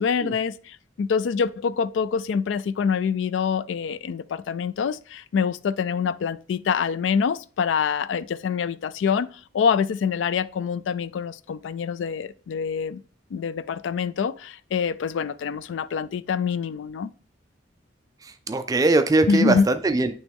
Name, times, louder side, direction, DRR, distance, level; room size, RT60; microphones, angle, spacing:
voice 1, 0.0-13.0 13.3-17.1 19.3-19.7, left 6 dB, 80° left, 0.3 m, -25 dB
voice 2, 18.2-20.1, right 2 dB, 20° right, 0.3 m, -21 dB
9.0 x 3.1 x 3.5 m
head